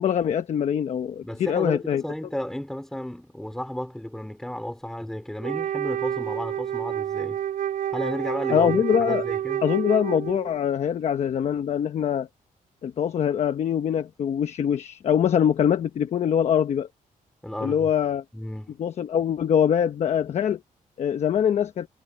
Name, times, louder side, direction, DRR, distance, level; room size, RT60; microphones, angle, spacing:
voice 1, 0.0-2.0 8.5-9.2 9.6-12.3 12.8-16.9 17.6-18.2 18.8-20.6 21.0-21.9, left 8 dB, 50° left, 1.0 m, -23 dB
voice 2, 1.2-7.4 7.9-9.6 17.4-17.9 18.3-18.7, left 1 dB, 5° left, 4.7 m, -33 dB
Wind instrument woodwind instrument, 5.4-10.6, right 11 dB, 85° right, 4.8 m, -29 dB
wide cardioid pair, 175°, 14 cm